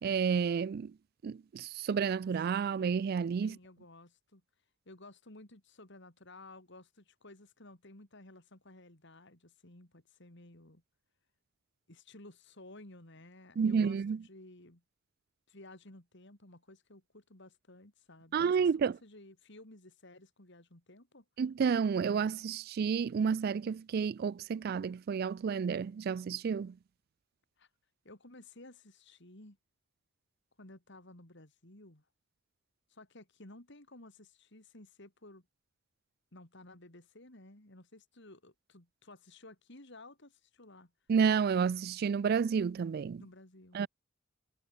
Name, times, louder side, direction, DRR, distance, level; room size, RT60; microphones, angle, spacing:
voice 1, 0.0-1.0 1.2-3.6 13.6-14.2 18.3-18.9 21.4-26.8 41.1-43.2 43.7-43.9, right 6 dB, 50° right, 0.3 m, -30 dB
voice 2, 3.4-4.4 4.9-10.8 11.9-14.8 15.5-21.2 27.6-27.7 28.0-29.6 30.6-32.0 32.9-35.5 36.3-40.9 43.2-43.9, left 2 dB, 60° left, 3.7 m, -55 dB
head